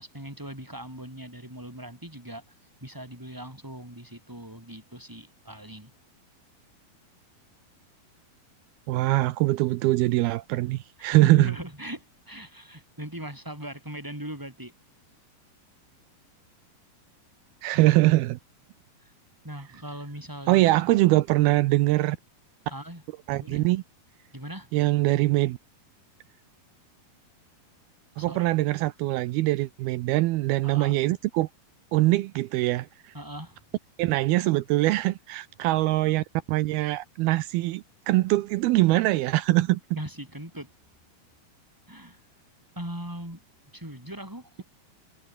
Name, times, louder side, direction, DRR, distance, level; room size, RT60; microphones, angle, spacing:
voice 1, 0.0-2.4 2.8-5.9 11.1-14.7 19.0-19.1 19.4-20.6 22.7-23.0 23.3-23.6 24.3-24.7 28.2-28.5 30.6-31.0 33.1-33.6 40.0-40.7 41.9-42.2 42.8-43.4 43.7-44.6, right 1 dB, 5° right, 7.1 m, -39 dB
voice 2, 8.9-11.5 17.6-18.4 20.5-22.2 23.3-23.8 24.7-25.6 28.2-31.5 31.9-33.1 34.0-39.8, right 18 dB, 80° right, 2.6 m, -23 dB
omnidirectional pair, 4.5 m